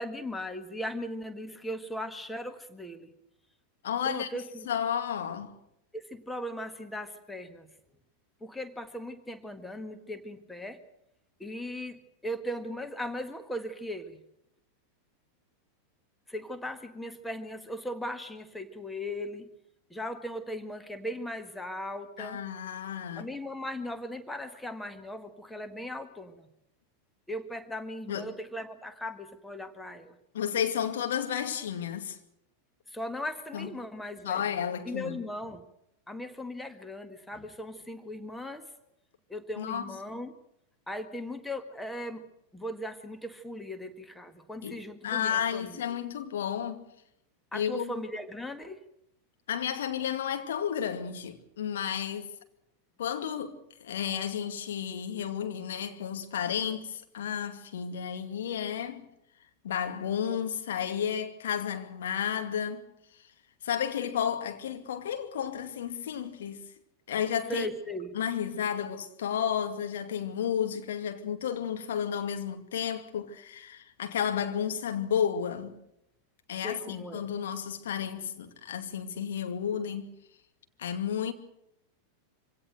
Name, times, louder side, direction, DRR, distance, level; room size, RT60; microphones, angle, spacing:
voice 1, 0.0-3.1 4.0-4.7 5.9-7.7 8.4-10.8 11.4-14.2 16.3-19.5 19.9-22.4 23.2-26.5 27.3-30.1 32.9-34.6 34.8-35.6 36.1-38.7 39.3-40.3 40.9-45.8 47.5-48.8 67.5-68.1 76.6-77.3, left 1 dB, 5° left, 1.7 m, -38 dB
voice 2, 3.8-4.3 4.7-5.5 22.2-23.3 28.1-28.3 30.3-32.2 33.5-33.7 34.2-35.2 39.6-39.9 44.6-46.8 47.5-47.9 49.5-52.3 53.0-59.1 59.6-62.8 63.6-66.6 67.1-67.7 68.1-75.7 76.5-80.1 80.8-81.3, left 8 dB, 60° left, 2.4 m, -32 dB
25.0 x 17.5 x 7.9 m
figure-of-eight pair, 90°, 0 cm